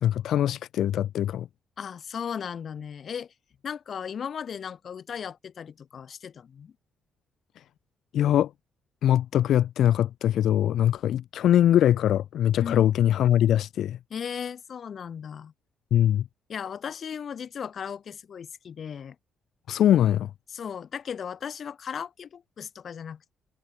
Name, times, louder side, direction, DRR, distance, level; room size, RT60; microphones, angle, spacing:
voice 1, 0.0-1.5 8.1-8.5 9.0-14.0 15.9-16.2 19.7-20.3, left 11 dB, 75° left, 0.9 m, -22 dB
voice 2, 1.8-3.3 3.6-6.7 12.6-12.9 14.1-15.5 16.5-19.2 20.5-23.3, left 7 dB, 55° left, 2.0 m, -36 dB
cardioid pair, 90°, 0 cm